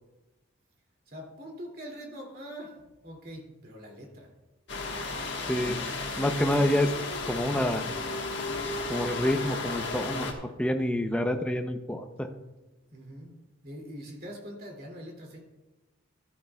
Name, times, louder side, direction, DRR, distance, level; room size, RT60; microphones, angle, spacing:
voice 1, 1.1-4.3 12.9-15.4, equal, 50° right, 0 dB, 2.5 m, -43 dB
sound 1, 4.7-10.3, left 3 dB, 60° left, 1.4 m, -34 dB
voice 2, 5.5-5.8 6.2-6.9 7.3-7.8 8.9-10.3 10.6-12.3, left 1 dB, 5° left, 5 dB, 0.6 m, -27 dB
14.0 x 12.0 x 2.3 m, 1.1 s
head